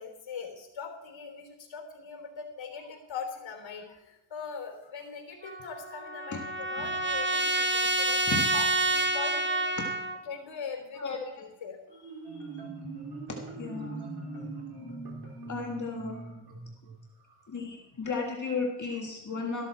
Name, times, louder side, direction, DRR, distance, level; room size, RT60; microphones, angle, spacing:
voice 1, 0.0-9.8 10.3-12.7, left 6 dB, 70° left, 3 dB, 3.5 m, -42 dB
Trumpet, 5.4-10.2, right 2 dB, 25° right, 1.1 m, -28 dB
Marimba xylophone, 11.9-17.4, right 3 dB, 55° right, 3.5 m, -41 dB
voice 2, 13.6-14.1 15.5-16.2 17.5-19.7, left 4 dB, 40° left, 0 dB, 1.8 m, -34 dB
13.5 x 12.5 x 4.4 m, 0.91 s
cardioid pair, 105°, 47 cm